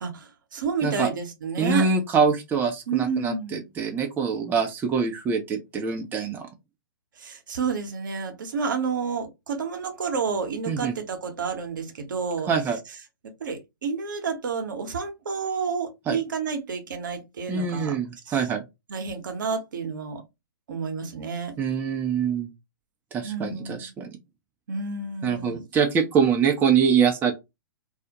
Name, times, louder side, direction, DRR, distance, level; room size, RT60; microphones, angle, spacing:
voice 1, 0.0-1.9 2.9-3.7 7.2-12.5 13.4-18.0 18.3-18.4 18.9-20.2 20.7-21.5 23.2-23.9 24.7-25.6, right 5 dB, 65° right, 0.8 m, -30 dB
voice 2, 1.6-6.5 10.7-10.9 12.5-12.8 16.1-16.2 17.5-18.6 21.6-22.5 23.1-24.1 25.2-27.3, right 6 dB, 15° right, 0.5 m, -24 dB
2.3 x 2.1 x 2.7 m
figure-of-eight pair, 110°, 11 cm